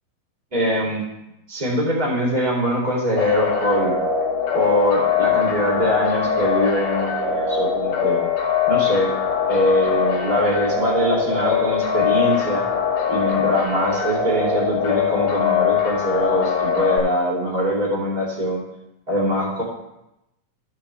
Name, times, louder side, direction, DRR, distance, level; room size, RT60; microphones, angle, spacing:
voice 1, 0.5-1.0 1.5-3.9 4.5-8.2 8.7-9.1 9.5-12.6 13.1-18.6 19.1-19.6, equal, 15° right, -5 dB, 1.6 m, -22 dB
sound 1, 3.2-17.0, left 7 dB, 50° left, 2.5 m, -22 dB
15.5 x 5.3 x 3.4 m, 0.89 s
omnidirectional pair, 5.6 m